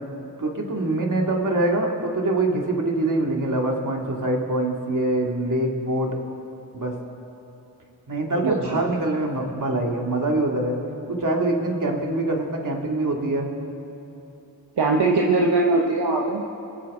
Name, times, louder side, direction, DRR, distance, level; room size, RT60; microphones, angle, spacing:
voice 1, 0.4-6.1 6.7-6.9 8.1-10.7 11.1-13.5, right 2 dB, 45° right, 0 dB, 2.3 m, -24 dB
voice 2, 8.4-8.8 14.8-16.4, right 3 dB, 65° right, 0 dB, 1.1 m, -21 dB
24.5 x 8.4 x 3.8 m, 2.8 s
cardioid pair, 40°, 43 cm